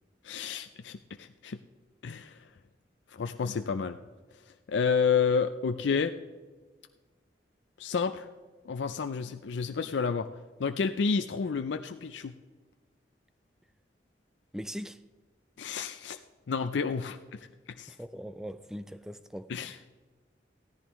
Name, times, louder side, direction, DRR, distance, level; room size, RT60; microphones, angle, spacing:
voice 1, 0.2-1.6 2.0-2.5 3.1-4.0 4.7-6.1 7.8-8.3 8.7-10.3 10.6-12.3 15.6-16.2 16.5-17.9 19.5-19.8, left 5 dB, 85° left, 0.5 m, -30 dB
voice 2, 14.5-15.0 17.9-19.5, equal, 5° right, 0.3 m, -40 dB
16.5 x 13.5 x 3.1 m
head